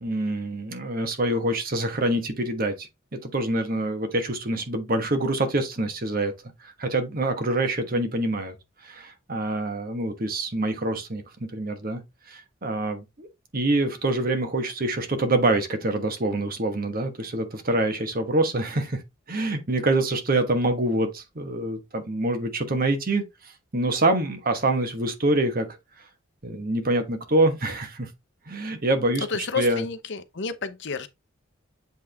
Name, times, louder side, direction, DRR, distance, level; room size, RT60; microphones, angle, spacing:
voice 1, 0.0-6.3 6.6-8.6 8.8-12.0 12.3-13.3 13.5-19.0 19.3-25.7 26.4-28.1 28.5-29.2 29.6-29.8, right 2 dB, 45° right, 1.3 m, -26 dB
voice 2, 29.2-31.1, left 5 dB, 60° left, 0.8 m, -30 dB
8.1 x 3.5 x 3.4 m
head